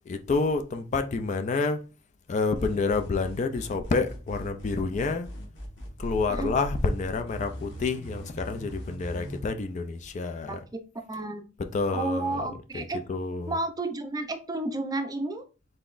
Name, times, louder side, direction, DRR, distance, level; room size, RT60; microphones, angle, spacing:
voice 1, 0.1-1.8 2.3-5.3 6.0-10.6 11.7-12.4 12.7-13.5, left 4 dB, 40° left, 0.3 m, -28 dB
sound 1, 2.5-9.4, equal, 65° left, 1.5 m, -39 dB
voice 2, 11.1-11.4 11.9-13.0 13.5-15.4, right 2 dB, 20° right, 0.5 m, -31 dB
3.9 x 3.8 x 2.5 m
head